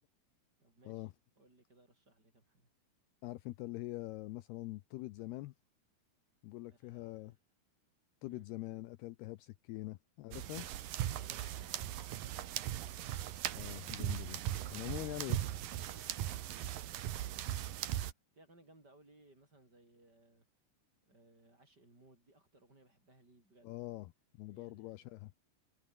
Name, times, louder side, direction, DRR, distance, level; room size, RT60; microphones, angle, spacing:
voice 1, 0.6-1.1 1.4-2.7 6.7-7.4 8.2-8.5 11.2-13.0 14.6-15.4 15.7-17.8 18.3-20.5 21.0-23.7 24.5-25.1, right 2 dB, 20° right, 8.0 m, -64 dB
voice 2, 3.2-5.5 6.4-7.4 8.2-10.7 13.5-14.4 14.7-15.4 23.6-24.1 24.4-25.3, left 18 dB, 75° left, 2.6 m, -44 dB
sound 1, 10.3-18.1, right 12 dB, 65° right, 2.8 m, -39 dB
omnidirectional pair, 4.9 m